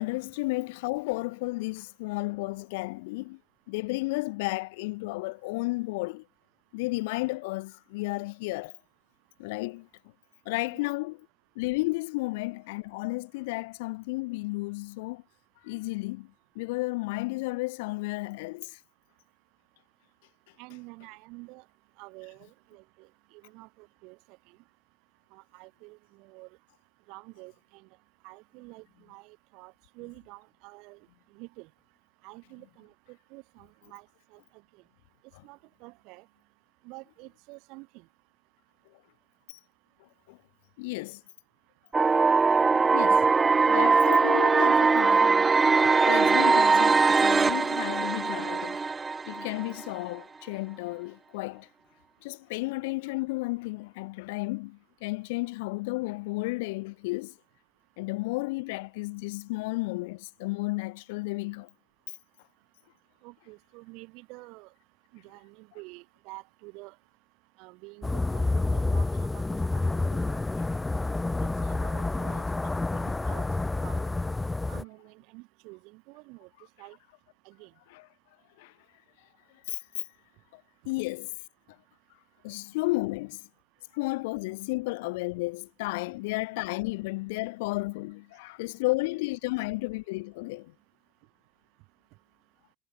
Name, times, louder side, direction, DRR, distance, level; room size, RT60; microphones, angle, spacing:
voice 1, 0.0-3.4 3.7-6.2 6.7-8.8 9.4-9.9 10.4-11.2 11.5-15.2 15.6-16.3 16.5-18.8 39.5-39.6 40.3-40.4 40.8-41.2 42.9-43.2 43.7-45.5 46.1-48.8 49.3-51.7 52.2-57.3 58.0-61.7 77.9-78.0 78.6-78.7 79.7-80.0 80.5-81.3 82.4-83.4 83.9-90.7, left 24 dB, 75° left, 1.6 m, -33 dB
voice 2, 20.6-21.6 22.0-23.1 23.4-24.2 25.3-26.5 27.1-27.9 28.2-31.0 31.3-31.7 32.2-34.0 34.3-34.4 35.4-36.2 36.8-38.0 63.2-64.7 65.1-66.9 67.6-68.4 68.7-69.4 69.7-69.8 70.1-70.4 71.6-72.4 72.9-73.5 73.8-74.0 74.7-76.5 76.8-77.0 77.4-77.7, right 27 dB, 65° right, 5.0 m, -48 dB
sound 1, 41.9-49.9, right 4 dB, 20° right, 0.4 m, -21 dB
sound 2, 68.0-74.8, left 2 dB, 10° left, 1.1 m, -28 dB
hypercardioid pair, 95°, 0 cm